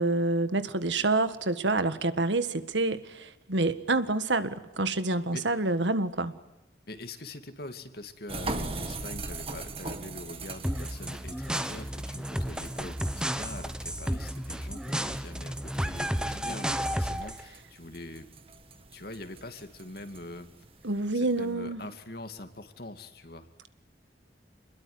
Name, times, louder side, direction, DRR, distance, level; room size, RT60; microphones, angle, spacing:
voice 1, 0.0-6.3 20.8-21.8, right 2 dB, 80° right, 12 dB, 1.7 m, -27 dB
voice 2, 6.9-18.3 18.9-20.5 21.1-23.5, left 2 dB, 55° left, 8 dB, 2.4 m, -43 dB
sound 1, 8.3-21.4, right 3 dB, 30° right, 2.0 m, -42 dB
sound 2, 10.6-17.4, equal, 5° right, 1.1 m, -32 dB
28.0 x 21.5 x 9.6 m, 0.95 s
head